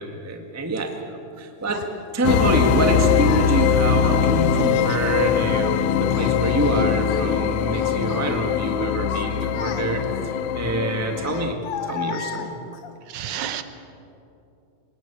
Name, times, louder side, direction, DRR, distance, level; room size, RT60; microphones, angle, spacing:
voice 1, 0.0-1.9 2.1-10.0 10.5-12.6, right 1 dB, 10° right, 3 dB, 0.7 m, -25 dB
Child speech kid speaking, 1.7-1.9 2.8-3.5 4.5-5.1 5.5-6.7 7.0-7.3 7.7-8.3 8.8-10.2 11.2-12.9, left 8 dB, 60° left, 1.7 m, -35 dB
sound 1, 2.2-11.5, left 8 dB, 75° left, 1.9 m, -22 dB
voice 2, 13.1-13.6, right 10 dB, 70° right, 10 dB, 2.3 m, -30 dB
25.0 x 20.5 x 7.0 m, 2.7 s
omnidirectional pair, 3.6 m